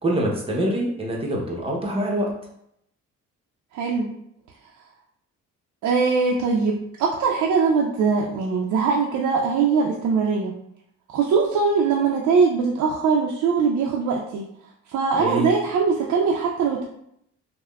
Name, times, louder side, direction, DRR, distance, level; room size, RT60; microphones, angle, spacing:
voice 1, 0.0-2.3 15.2-15.5, right 1 dB, 20° right, -2 dB, 0.7 m, -25 dB
voice 2, 3.7-4.1 5.8-10.5 11.1-14.4 14.9-16.9, right 5 dB, 70° right, -1 dB, 0.4 m, -21 dB
3.3 x 2.1 x 2.2 m, 0.75 s
cardioid pair, 90°, 30 cm